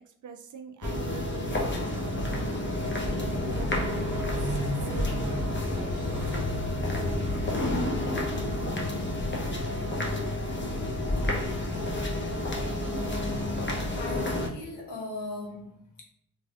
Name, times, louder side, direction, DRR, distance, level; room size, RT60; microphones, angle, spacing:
voice 1, 0.1-2.1 2.9-6.4 6.9-7.9, right 6 dB, 45° right, 0.4 m, -44 dB
sound 1, 0.8-14.5, left 1 dB, 25° left, 0.9 m, -29 dB
sound 2, 1.5-7.5, left 1 dB, 5° right, 0.9 m, -46 dB
voice 2, 14.0-16.0, left 2 dB, 65° left, 1.1 m, -38 dB
3.1 x 2.6 x 2.4 m
hypercardioid pair, 40°, 46 cm